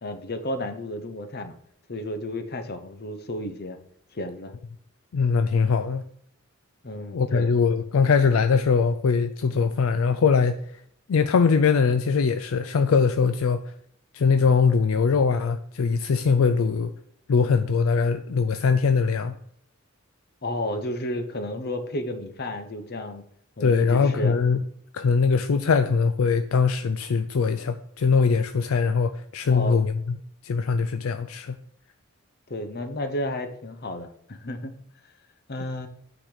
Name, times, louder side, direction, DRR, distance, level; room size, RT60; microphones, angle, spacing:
voice 1, 0.0-1.5 1.9-3.8 4.1-4.5 6.8-7.5 20.4-23.2 23.6-24.3 29.5-29.8 32.5-34.8 35.5-35.9, left 1 dB, 50° left, 0.9 m, -32 dB
voice 2, 5.1-6.0 7.1-10.5 11.1-13.7 14.1-16.9 17.3-19.3 23.6-24.6 24.9-30.2 30.4-31.6, left 5 dB, 75° left, 0.4 m, -22 dB
8.9 x 4.1 x 5.0 m
head